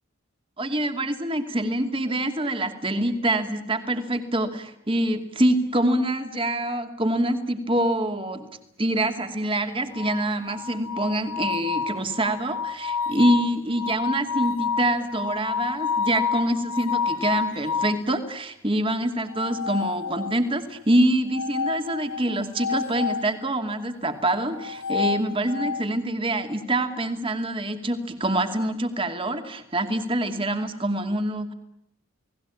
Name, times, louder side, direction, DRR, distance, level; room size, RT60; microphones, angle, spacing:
voice 1, 0.6-8.5 8.8-31.5, right 1 dB, 25° right, 7 dB, 2.6 m, -25 dB
sound 1, 9.9-18.0 19.3-20.6 21.3-23.3 24.5-25.9, left 6 dB, 85° left, 1.4 m, -29 dB
30.0 x 19.5 x 8.6 m, 0.79 s
head